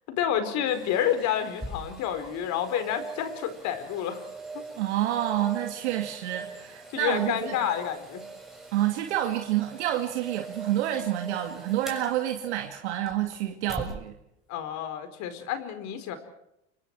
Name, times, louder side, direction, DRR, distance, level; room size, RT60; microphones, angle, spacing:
voice 1, 0.1-4.2 6.9-8.2 14.5-16.2, left 9 dB, 55° left, 9 dB, 4.5 m, -29 dB
sound 1, 0.7-14.0 14.5-14.6, right 3 dB, ahead, 6.6 m, -42 dB
voice 2, 4.8-7.6 8.7-14.1, right 12 dB, 75° right, 3 dB, 2.4 m, -28 dB
29.0 x 25.5 x 4.7 m, 0.83 s
hypercardioid pair, 90°, 34 cm